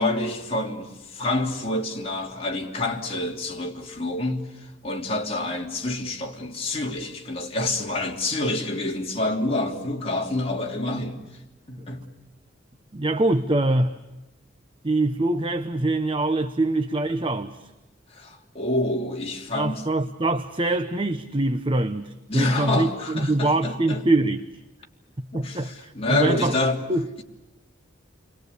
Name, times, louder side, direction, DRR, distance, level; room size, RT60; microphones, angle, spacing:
voice 1, 0.0-11.2 11.7-12.0 18.1-19.8 22.3-24.0 25.3-26.8, left 2 dB, 30° left, 3.0 m, -27 dB
voice 2, 12.9-13.9 14.8-17.6 19.5-24.5 25.3-26.5 26.9-27.2, right 2 dB, 30° right, 0.9 m, -24 dB
29.5 x 23.0 x 8.3 m
head